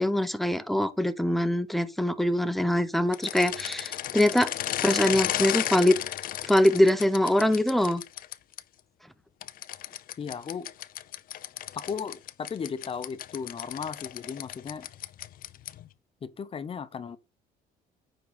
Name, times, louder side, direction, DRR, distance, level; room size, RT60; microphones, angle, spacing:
voice 1, 0.0-4.5 4.8-6.0 6.5-8.0, left 1 dB, ahead, 0.8 m, -23 dB
sound 1, 3.1-8.6 9.4-15.9, left 13 dB, 60° left, 0.5 m, -34 dB
voice 2, 10.2-10.7 11.7-14.9 16.2-17.2, left 6 dB, 35° left, 0.8 m, -36 dB
9.5 x 3.9 x 5.2 m
cardioid pair, 110°, 17 cm